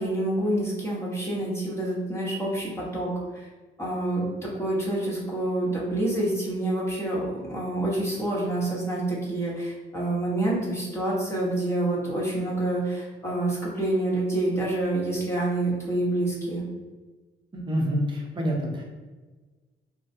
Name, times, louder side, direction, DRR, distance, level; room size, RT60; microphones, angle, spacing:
voice 1, 0.0-3.5 3.8-16.6, right 1 dB, 15° left, -6 dB, 1.0 m, -27 dB
voice 2, 17.5-18.8, equal, 25° right, -2 dB, 0.8 m, -27 dB
3.2 x 2.1 x 2.7 m, 1.3 s
cardioid pair, 90°, 20 cm